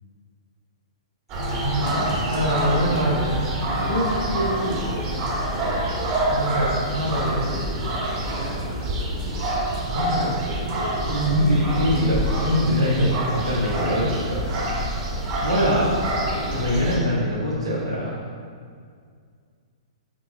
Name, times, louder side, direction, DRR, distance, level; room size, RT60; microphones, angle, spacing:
sound 1, 1.3-17.0, right 1 dB, 30° right, 1.6 m, -26 dB
voice 1, 1.4-5.1 6.3-7.5 9.8-14.7 15.4-15.9 16.5-18.1, equal, 85° right, -10 dB, 1.5 m, -24 dB
7.0 x 4.3 x 3.8 m, 2.1 s
figure-of-eight pair, 110°, 3 cm